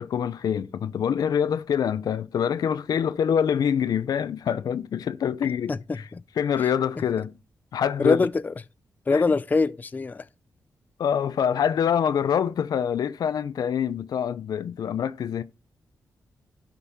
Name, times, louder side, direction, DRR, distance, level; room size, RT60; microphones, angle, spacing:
voice 1, 0.0-6.0 6.4-7.4 7.7-8.2 9.1-9.2 11.0-15.4, left 8 dB, 75° left, 0.6 m, -25 dB
voice 2, 5.7-6.2 6.6-6.7 8.0-8.5 9.1-10.3, left 4 dB, 25° left, 0.4 m, -24 dB
12.0 x 5.4 x 4.2 m
cardioid pair, 100°, 7 cm